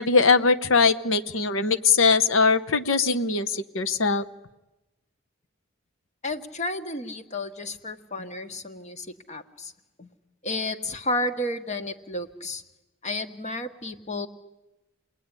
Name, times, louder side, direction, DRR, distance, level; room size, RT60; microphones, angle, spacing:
voice 1, 0.0-4.3, left 4 dB, 90° left, 10 dB, 1.1 m, -21 dB
voice 2, 6.2-9.7 10.0-10.1 10.4-12.6 13.0-14.3, left 2 dB, 35° left, 8 dB, 1.5 m, -32 dB
28.5 x 20.5 x 9.8 m, 1.0 s
head